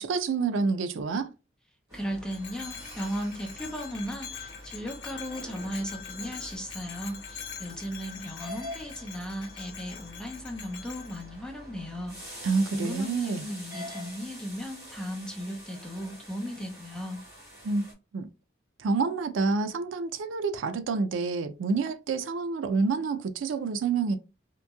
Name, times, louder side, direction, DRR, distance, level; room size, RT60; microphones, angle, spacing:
voice 1, 0.0-1.3 12.4-13.5 17.6-17.9 18.1-18.3 18.8-24.2, right 4 dB, 85° right, 0.4 m, -28 dB
voice 2, 1.9-12.5 12.7-17.2, equal, 5° left, 0.6 m, -36 dB
sound 1, 1.9-17.9, equal, 15° right, 1.2 m, -46 dB
Bell, 2.3-11.2, left 8 dB, 80° left, 0.9 m, -44 dB
3.0 x 2.5 x 2.2 m
head